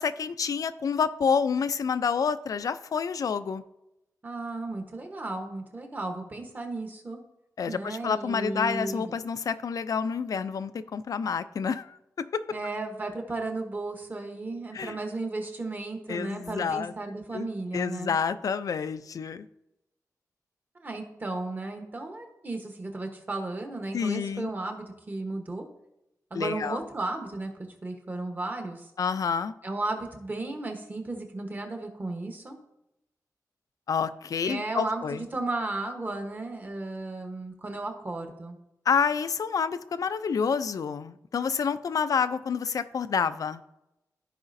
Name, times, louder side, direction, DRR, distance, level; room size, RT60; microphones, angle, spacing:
voice 1, 0.0-3.6 7.6-12.5 14.7-15.0 16.1-16.9 17.3-17.5 17.7-19.5 23.9-24.5 26.3-26.8 29.0-29.5 33.9-35.2 38.9-43.6, left 6 dB, 65° left, 13 dB, 0.4 m, -28 dB
voice 2, 4.2-7.2 7.7-9.1 12.5-18.1 20.8-25.7 26.3-28.9 29.6-32.6 34.4-38.6, right 2 dB, 30° right, 4 dB, 1.1 m, -34 dB
14.5 x 5.0 x 2.6 m, 0.87 s
wide cardioid pair, 170°, 6 cm